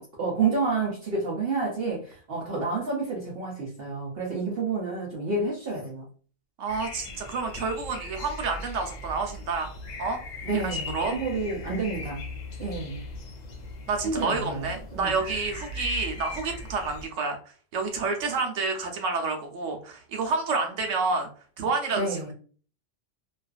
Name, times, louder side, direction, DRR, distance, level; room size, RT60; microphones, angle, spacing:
voice 1, 0.2-6.1 10.4-12.2 12.6-13.0 14.0-15.2 22.0-22.3, right 4 dB, 60° right, 0.7 m, -29 dB
voice 2, 6.6-9.7 10.0-10.2 10.5-11.1 13.9-17.4 17.7-21.3 21.6-22.3, right 4 dB, 80° right, 1.0 m, -29 dB
sound 1, 6.7-17.1, left 2 dB, 60° left, 0.4 m, -39 dB
2.4 x 2.4 x 2.3 m
omnidirectional pair, 1.3 m